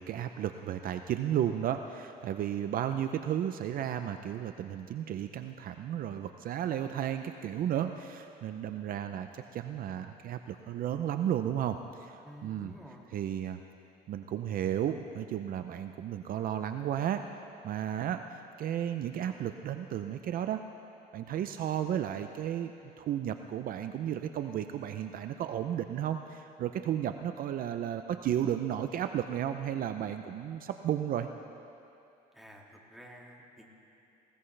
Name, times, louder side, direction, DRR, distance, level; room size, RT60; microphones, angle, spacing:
voice 1, 0.0-12.7 13.1-13.6 14.1-17.2 17.6-18.2 18.6-20.6 21.1-22.7 23.0-31.3, right 10 dB, 60° right, 8 dB, 0.6 m, -33 dB
voice 2, 12.2-13.1 32.3-33.7, equal, ahead, -2 dB, 2.2 m, -51 dB
19.5 x 18.0 x 3.3 m, 2.7 s
cardioid pair, 110°, 17 cm